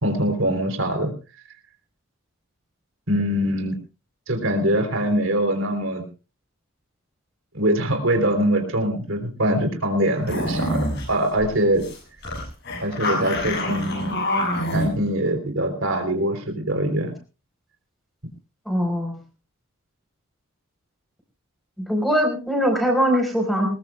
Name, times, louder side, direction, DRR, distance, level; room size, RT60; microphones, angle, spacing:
voice 1, 0.0-1.1 3.1-3.8 4.3-6.0 7.5-11.9 12.8-14.1 14.7-17.1, right 1 dB, 65° right, 5 dB, 3.4 m, -23 dB
sound 1, 10.3-11.1 11.4-11.5 11.8-12.0 12.2-14.9, left 1 dB, 50° left, 7.3 m, -26 dB
voice 2, 18.7-19.2 21.8-23.7, equal, ahead, 3 dB, 4.4 m, -21 dB
20.5 x 20.5 x 2.3 m, 0.32 s
head